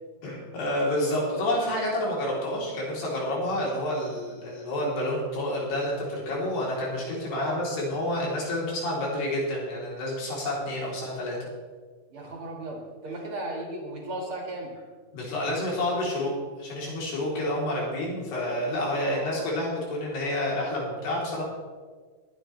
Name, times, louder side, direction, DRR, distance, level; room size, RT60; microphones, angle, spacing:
voice 1, 0.2-11.4 15.1-16.3 16.6-21.4, left 1 dB, 85° left, -4 dB, 5.5 m, -29 dB
voice 2, 7.3-7.6 12.1-14.7 19.0-19.5, right 2 dB, 40° right, 0 dB, 2.2 m, -36 dB
21.5 x 9.2 x 3.3 m, 1.5 s
omnidirectional pair, 4.6 m